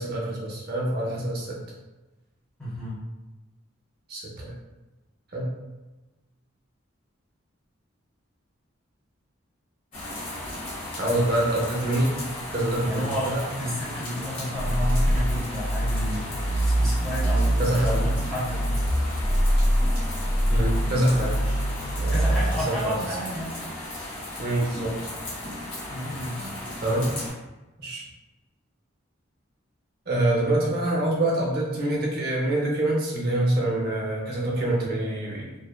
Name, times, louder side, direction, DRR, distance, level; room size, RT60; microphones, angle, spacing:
voice 1, 0.0-1.6 4.1-4.5 5.3-5.5 11.0-12.2 12.5-13.4 17.6-18.1 20.5-21.4 22.0-23.0 24.4-24.9 25.9-26.1 26.4-27.1 27.8-28.0 30.1-35.5, right 1 dB, 50° right, -3 dB, 0.6 m, -26 dB
voice 2, 2.6-3.0 12.8-18.7 21.4-21.6 22.1-23.6 25.9-26.5, equal, 5° left, -8 dB, 0.8 m, -32 dB
sound 1, 9.9-27.3, left 1 dB, 40° left, 1.0 m, -36 dB
sound 2, 14.5-22.6, equal, 70° left, 0.4 m, -24 dB
2.6 x 2.1 x 2.2 m, 1.1 s
head